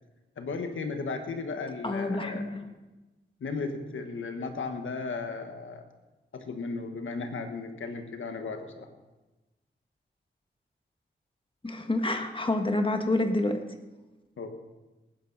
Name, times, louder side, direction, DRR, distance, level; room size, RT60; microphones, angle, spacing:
voice 1, 0.4-2.5 3.4-5.8 6.3-8.9 14.4-14.6, left 4 dB, 85° left, 6 dB, 1.5 m, -35 dB
voice 2, 1.8-2.7 11.6-13.6, left 2 dB, 25° left, 5 dB, 1.6 m, -28 dB
19.0 x 10.5 x 4.1 m, 1.1 s
cardioid pair, 55°, 20 cm